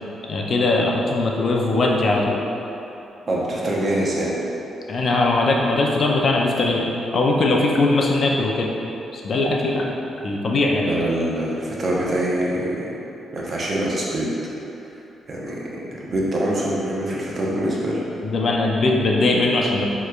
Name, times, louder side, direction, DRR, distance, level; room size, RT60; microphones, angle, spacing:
voice 1, 0.3-2.4 4.9-8.7 9.1-9.9 10.2-10.9 18.2-19.9, left 2 dB, 55° left, -1 dB, 0.5 m, -20 dB
voice 2, 3.3-4.4 10.8-12.9 13.3-14.3 15.3-15.6 16.0-18.1, right 1 dB, 45° right, -4 dB, 0.9 m, -24 dB
6.5 x 3.1 x 2.4 m, 2.9 s
cardioid pair, 80°, 0 cm